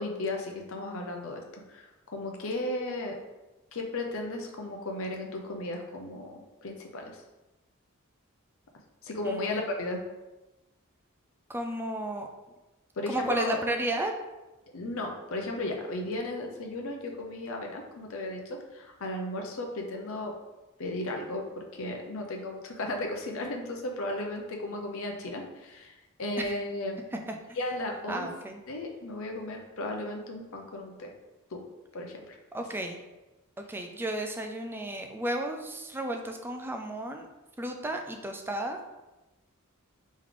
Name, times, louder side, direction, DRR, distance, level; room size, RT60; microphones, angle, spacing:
voice 1, 0.0-3.2 3.7-7.2 9.0-10.0 13.0-13.6 14.7-20.4 20.8-27.0 27.6-28.3 28.7-31.1 31.5-31.6 31.9-32.4, left 2 dB, 65° left, 2 dB, 0.7 m, -35 dB
voice 2, 9.2-9.6 11.5-12.3 13.1-14.2 26.4-26.6 27.1-27.6 28.1-28.6 32.5-33.0 33.6-37.3 37.6-38.8, right 1 dB, 10° right, 4 dB, 0.4 m, -33 dB
3.6 x 3.1 x 3.8 m, 1.1 s
head